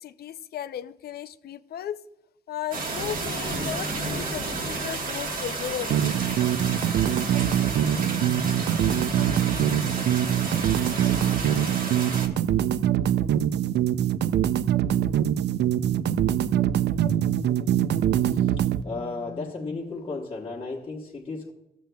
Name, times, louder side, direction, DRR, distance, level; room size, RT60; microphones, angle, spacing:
voice 1, 0.0-2.0 2.5-6.2, left 10 dB, 70° left, 12 dB, 0.4 m, -35 dB
sound 1, 2.7-12.3, right 3 dB, 55° right, 1.2 m, -32 dB
sound 2, 5.5-20.0, left 1 dB, 10° right, 1.5 m, -43 dB
sound 3, 5.9-18.8, right 10 dB, 85° right, 0.4 m, -24 dB
voice 2, 18.8-21.5, left 3 dB, 30° left, -4 dB, 1.1 m, -34 dB
15.0 x 7.3 x 2.2 m, 0.89 s
wide cardioid pair, 175°, 17 cm